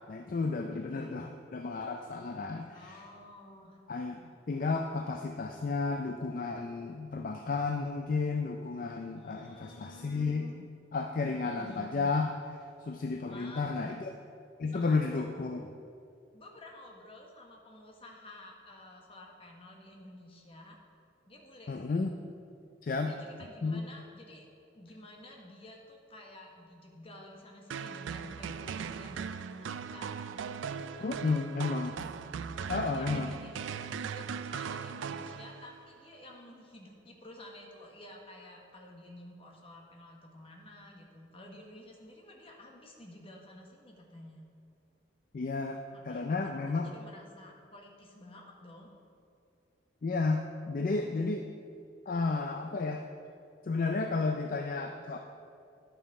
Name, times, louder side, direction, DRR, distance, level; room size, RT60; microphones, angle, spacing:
voice 1, 0.1-3.0 3.9-10.5 10.9-12.3 12.8-14.1 14.6-15.6 21.7-22.1 22.8-23.2 23.6-23.8 31.0-31.9 32.7-33.3 45.3-46.9 50.0-51.5 52.1-53.1 53.6-55.2, left 4 dB, 45° left, 4 dB, 0.4 m, -32 dB
voice 2, 0.8-1.4 2.7-3.8 9.2-10.6 11.3-12.1 13.2-14.0 14.7-15.3 16.3-20.8 21.3-22.1 23.0-24.5 24.7-30.4 31.0-31.9 32.6-33.5 34.0-44.5 45.9-48.9, left 1 dB, 30° left, 0 dB, 1.1 m, -51 dB
sound 1, 27.7-35.8, right 6 dB, 80° right, 0.3 m, -39 dB
11.0 x 5.6 x 4.8 m, 2.5 s
head